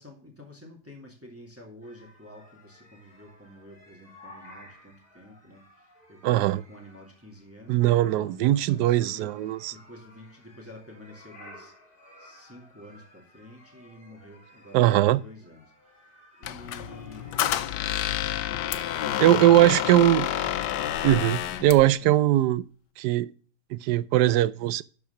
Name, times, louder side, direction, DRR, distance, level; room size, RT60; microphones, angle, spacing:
voice 1, 0.0-11.7 12.2-17.4 18.9-20.0 21.0-22.3, left 1 dB, 10° right, 2.3 m, -49 dB
sound 1, 1.8-17.6, left 1 dB, 30° left, 2.9 m, -54 dB
voice 2, 6.2-6.6 7.7-9.7 14.7-15.2 19.2-20.3 21.0-22.6 23.0-23.3 23.7-24.8, right 14 dB, 75° right, 1.1 m, -20 dB
Squeak, 16.4-21.7, left 12 dB, 90° left, 1.3 m, -29 dB
sound 2, 20.8-22.9, left 9 dB, 55° left, 1.0 m, -47 dB
12.0 x 4.7 x 5.7 m
omnidirectional pair, 1.8 m